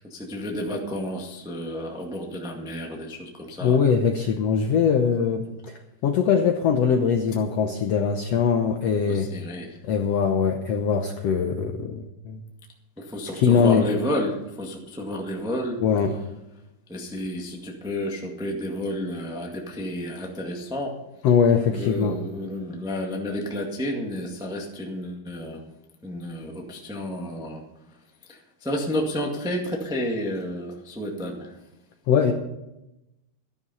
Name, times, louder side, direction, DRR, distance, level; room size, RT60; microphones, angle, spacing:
voice 1, 0.0-3.8 9.1-9.8 13.0-15.8 16.9-21.0 21.7-25.6 26.0-27.6 28.2-31.6, left 1 dB, 5° right, 0 dB, 0.4 m, -31 dB
voice 2, 3.6-9.3 9.8-12.4 13.3-13.9 15.8-16.1 21.2-22.2 32.1-32.3, left 6 dB, 80° left, 4 dB, 1.4 m, -22 dB
13.5 x 11.5 x 5.5 m, 0.92 s
omnidirectional pair, 4.0 m